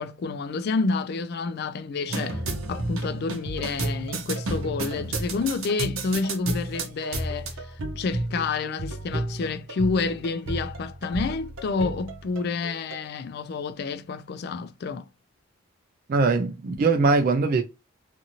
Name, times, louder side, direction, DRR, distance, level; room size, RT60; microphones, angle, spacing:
voice 1, 0.0-2.4 2.7-7.7 7.9-15.1, left 4 dB, 50° left, 0.3 m, -29 dB
sound 1, 2.1-13.0, right 2 dB, 80° right, 0.6 m, -32 dB
voice 2, 16.1-17.6, right 4 dB, 45° right, 0.3 m, -21 dB
2.6 x 2.6 x 2.8 m
head